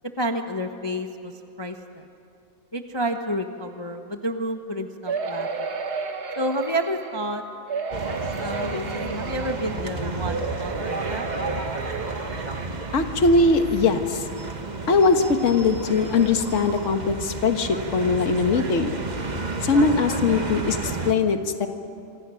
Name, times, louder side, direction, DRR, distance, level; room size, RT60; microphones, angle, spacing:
voice 1, 0.0-2.0 2.7-5.7 6.4-7.4 8.4-11.3, equal, 20° left, 5 dB, 0.8 m, -30 dB
sound 1, 5.1-7.2 7.7-9.9 10.2-13.1 13.7-13.8 14.1-14.2, right 4 dB, 60° right, 1.9 m, -32 dB
sound 2, 7.9-21.1, right 3 dB, 25° right, 1.3 m, -32 dB
voice 2, 12.9-14.2 14.9-19.0 19.6-21.7, left 4 dB, 45° left, 6 dB, 1.6 m, -21 dB
27.5 x 26.0 x 6.4 m, 2.9 s
omnidirectional pair, 1.9 m